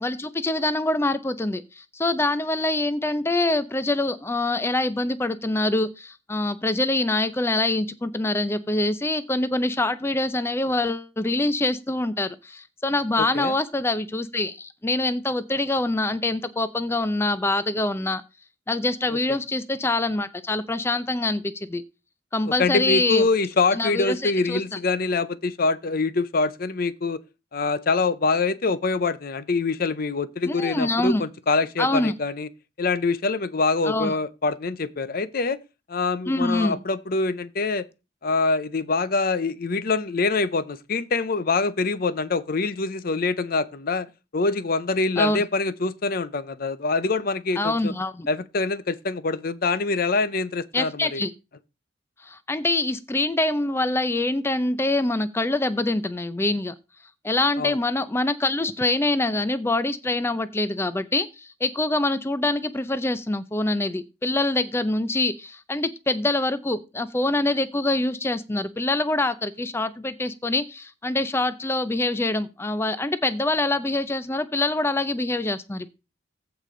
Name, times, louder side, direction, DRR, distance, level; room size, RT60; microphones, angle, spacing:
voice 1, 0.0-18.2 18.7-21.8 22.3-23.2 23.7-24.8 30.5-31.2 31.8-32.1 33.9-34.2 36.3-36.8 45.2-45.4 47.6-48.3 50.7-51.3 52.2-56.7 57.2-75.9, left 2 dB, 15° left, 0.5 m, -25 dB
voice 2, 13.2-13.5 22.6-27.2 27.5-32.5 32.8-35.6 35.9-37.9 38.2-44.1 44.3-47.9 48.3-51.2 57.6-57.8, left 3 dB, 50° left, 0.7 m, -25 dB
15.0 x 5.0 x 3.8 m
head